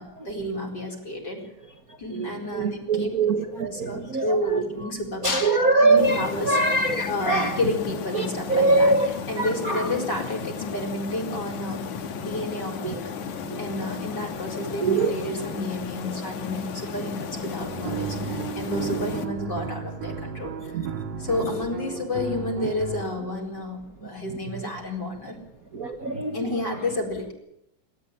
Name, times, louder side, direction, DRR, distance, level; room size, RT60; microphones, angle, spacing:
voice 1, 0.0-1.4 2.0-3.1 3.6-6.6 7.1-11.8 12.2-20.8 21.2-25.4 26.3-27.3, left 2 dB, 30° left, 0 dB, 4.9 m, -31 dB
voice 2, 2.2-4.6 5.2-7.5 8.2-9.1 9.4-9.8 12.8-13.0 13.5-13.6 14.8-15.1 20.7-20.9 25.7-26.4, right 2 dB, 55° right, 4 dB, 0.9 m, -23 dB
sound 1, 6.0-19.2, left 6 dB, 65° left, 2.9 m, -34 dB
sound 2, 17.6-23.0, right 7 dB, 85° right, 3.9 m, -34 dB
28.5 x 13.0 x 9.0 m, 0.81 s
omnidirectional pair, 3.8 m